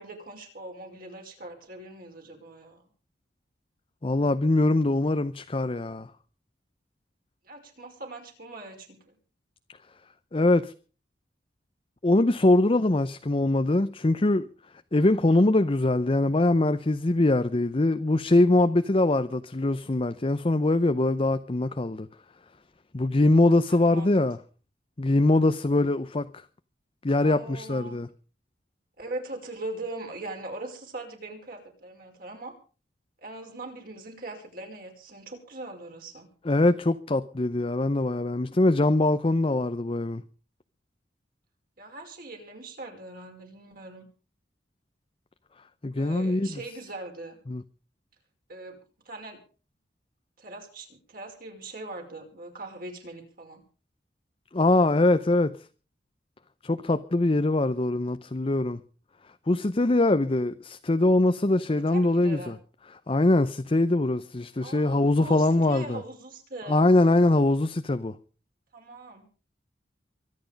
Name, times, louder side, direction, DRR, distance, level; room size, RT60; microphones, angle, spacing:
voice 1, 0.0-2.8 7.4-9.2 23.7-24.2 27.2-28.0 29.0-32.5 33.2-36.3 41.8-44.1 46.0-47.4 48.5-48.8 49.1-49.4 50.4-53.6 61.9-62.5 64.6-66.8 68.7-69.3, right 2 dB, 50° right, 5.2 m, -41 dB
voice 2, 4.0-6.1 10.3-10.7 12.0-14.5 14.9-22.1 22.9-24.4 25.0-26.3 27.0-28.1 36.4-40.2 45.8-46.6 47.5-47.6 54.5-55.6 56.6-58.8 59.5-62.6 63.1-66.0 66.7-68.2, left 2 dB, 30° left, 0.6 m, -23 dB
24.0 x 9.5 x 5.3 m
head